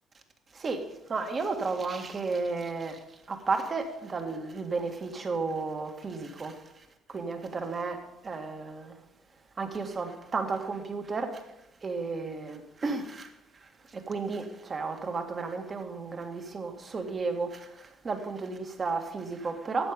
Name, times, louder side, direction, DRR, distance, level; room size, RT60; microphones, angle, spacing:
voice 1, 0.5-9.0 9.6-11.5 11.8-19.9, right 4 dB, 35° right, 1.8 m, -33 dB
12.5 x 8.3 x 5.1 m
supercardioid pair, 85°, 0 cm